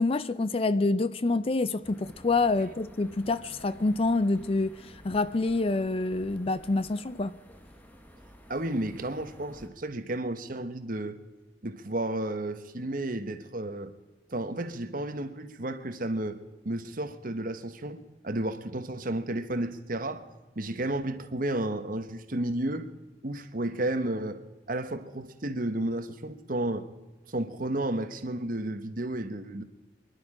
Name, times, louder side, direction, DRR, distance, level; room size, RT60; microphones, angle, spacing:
voice 1, 0.0-7.3, left 3 dB, 30° left, 0.4 m, -27 dB
sound 1, 1.8-9.7, equal, 10° left, 1.2 m, -52 dB
voice 2, 8.5-11.2 11.6-13.9 14.3-16.4 16.6-20.3 20.6-22.9 23.2-24.4 24.7-26.9 27.3-29.6, right 1 dB, 45° right, 1.1 m, -32 dB
26.0 x 11.0 x 5.0 m
head